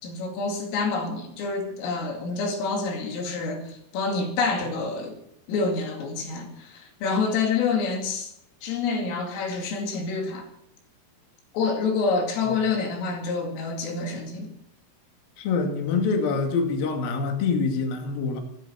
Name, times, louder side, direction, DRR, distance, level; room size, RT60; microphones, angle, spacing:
voice 1, 0.0-5.2 5.5-8.3 8.6-10.5 11.5-14.5, left 4 dB, 80° left, 5.0 m, -27 dB
voice 2, 15.4-18.4, left 4 dB, 55° left, 3.5 m, -25 dB
13.5 x 13.5 x 6.9 m
omnidirectional pair, 5.8 m